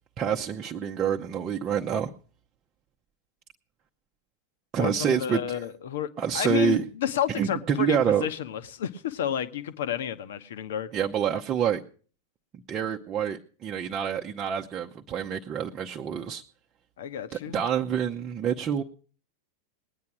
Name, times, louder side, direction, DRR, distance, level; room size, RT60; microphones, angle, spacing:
voice 1, 0.2-2.1 4.7-5.6 6.2-6.8 7.4-8.3 10.9-11.8 12.7-16.4 17.5-18.8, right 8 dB, 30° right, 0.8 m, -27 dB
voice 2, 4.8-10.9 17.0-17.6, left 10 dB, 60° left, 1.1 m, -31 dB
20.0 x 9.5 x 6.0 m
figure-of-eight pair, 90°, 0 cm